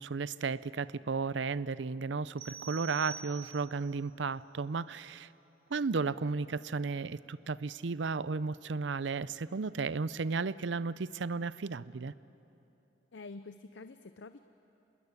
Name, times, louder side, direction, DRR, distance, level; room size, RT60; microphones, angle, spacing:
voice 1, 0.0-5.3 5.7-12.1, right 4 dB, 85° right, 18 dB, 0.6 m, -34 dB
sound 1, 2.4-3.9, right 9 dB, 30° right, 2.6 m, -46 dB
voice 2, 13.1-14.4, left 3 dB, 85° left, 10 dB, 0.7 m, -47 dB
26.0 x 20.5 x 9.8 m, 2.9 s
head